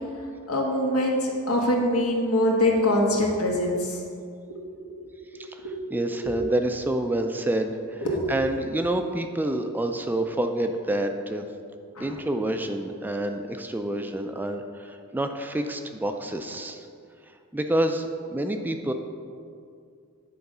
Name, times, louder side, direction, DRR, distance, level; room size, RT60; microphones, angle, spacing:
voice 1, 0.5-4.0 4.5-4.6 4.9-5.0 5.6-5.7 6.2-6.3 8.0-8.3 12.0-12.1, left 1 dB, 85° left, -1 dB, 1.3 m, -24 dB
voice 2, 5.4-11.4 12.0-16.9 17.5-18.9, right 1 dB, 10° right, 6 dB, 0.3 m, -28 dB
9.4 x 3.9 x 5.4 m, 2.3 s
head